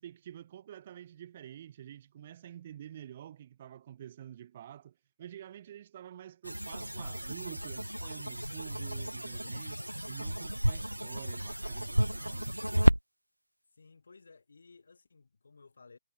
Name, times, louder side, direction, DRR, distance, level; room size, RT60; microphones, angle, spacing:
voice 1, 0.0-9.8 10.1-12.5, right 10 dB, 40° right, 1.3 m, -48 dB
sound 1, 6.4-13.0, equal, 85° right, 0.3 m, -31 dB
voice 2, 13.7-16.0, left 4 dB, 65° left, 1.7 m, -57 dB
figure-of-eight pair, 135°, 0 cm